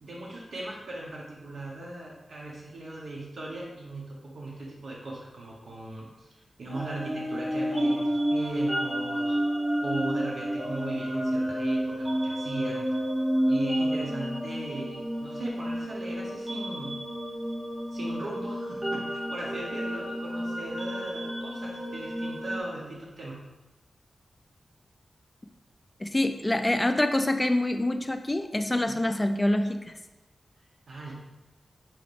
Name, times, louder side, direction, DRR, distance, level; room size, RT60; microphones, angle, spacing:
voice 1, 0.0-6.3 6.6-9.4 9.8-12.9 13.5-17.0 17.9-23.4 28.9-29.2 30.9-31.1, right 2 dB, 65° right, -4 dB, 0.8 m, -38 dB
sound 1, 6.7-22.6, equal, 15° right, 0.7 m, -30 dB
voice 2, 26.0-29.9, left 1 dB, 15° left, 7 dB, 0.3 m, -26 dB
5.7 x 2.5 x 3.3 m, 1.1 s
wide cardioid pair, 130°, 0 cm